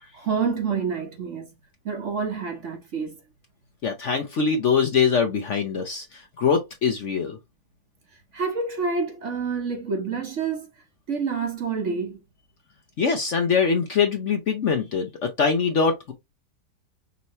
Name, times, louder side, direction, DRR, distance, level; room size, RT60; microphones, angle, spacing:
voice 1, 0.1-1.5 1.8-3.2 8.3-10.7 11.1-12.2, right 5 dB, 50° right, 1.2 m, -28 dB
voice 2, 3.8-7.4 13.0-16.1, left 5 dB, 55° left, 0.9 m, -23 dB
5.6 x 2.8 x 3.0 m
omnidirectional pair, 1.9 m